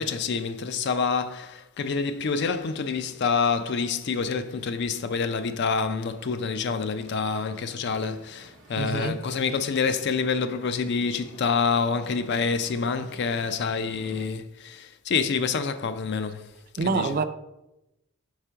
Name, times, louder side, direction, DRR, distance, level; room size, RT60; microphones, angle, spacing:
voice 1, 0.0-16.5 16.8-17.1, left 5 dB, 55° left, 0.4 m, -27 dB
sound 1, 2.1-14.3, right 1 dB, 75° right, 0.8 m, -53 dB
voice 2, 8.8-9.2 16.8-17.2, right 4 dB, 45° right, 0.4 m, -26 dB
4.8 x 3.7 x 5.6 m
head